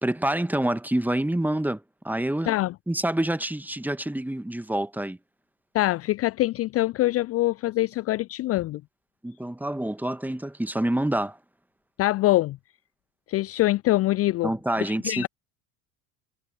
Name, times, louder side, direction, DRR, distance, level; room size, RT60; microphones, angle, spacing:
voice 1, 0.0-2.6 2.9-5.2 9.2-11.4 14.4-15.3, right 1 dB, 5° right, 1.8 m, -27 dB
voice 2, 5.7-8.8 12.0-12.6 13.3-14.5 14.8-15.3, left 16 dB, 30° left, 0.6 m, -24 dB
figure-of-eight pair, 65°, 46 cm